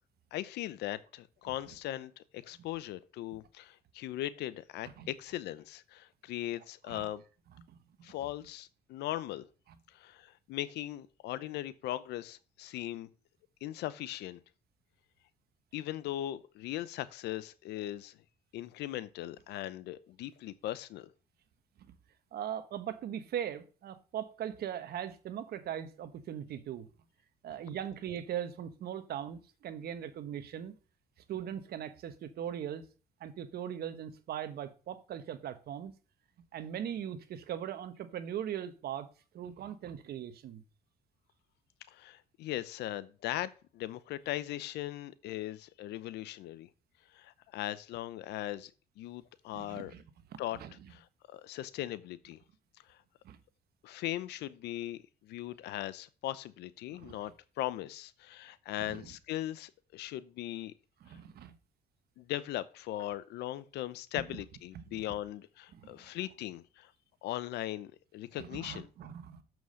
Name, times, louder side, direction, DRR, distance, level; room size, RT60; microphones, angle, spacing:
voice 1, 0.3-7.2 8.0-9.5 9.9-13.1 13.6-14.4 15.7-18.2 18.5-21.1 41.9-46.7 47.1-48.7 49.0-49.9 50.4-50.6 50.9-52.4 53.8-57.3 57.6-60.7 62.2-66.9 67.2-68.9, left 14 dB, 80° left, 0.7 m, -39 dB
voice 2, 22.3-26.9 27.4-30.7 31.3-32.9 33.2-35.9 36.5-39.1 39.3-40.6 49.5-50.0 50.5-50.7 53.2-53.4 56.9-57.2 58.8-59.1 61.0-61.5 65.7-65.8 68.4-69.4, right 9 dB, 65° right, 1.2 m, -40 dB
7.1 x 6.2 x 6.3 m
supercardioid pair, 75°, 17 cm